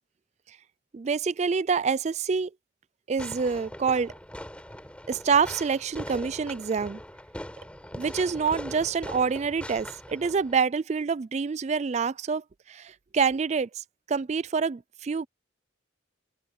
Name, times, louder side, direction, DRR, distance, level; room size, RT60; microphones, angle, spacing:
voice 1, 0.9-2.5 3.1-4.1 5.1-7.0 7.9-15.3, right 5 dB, 35° right, 0.3 m, -27 dB
Fireworks, 3.2-10.6, equal, 5° left, 5.2 m, -41 dB
head